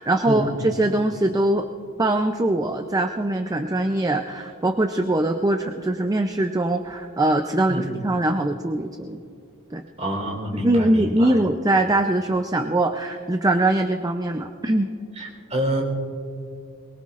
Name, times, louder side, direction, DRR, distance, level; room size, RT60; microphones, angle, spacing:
voice 1, 0.0-1.7 2.0-9.2 9.7-9.8 10.5-14.9, right 1 dB, 15° right, 5 dB, 0.5 m, -22 dB
voice 2, 10.0-11.3 15.2-15.8, equal, 35° right, 0 dB, 3.8 m, -27 dB
23.0 x 22.0 x 2.5 m, 2.4 s
head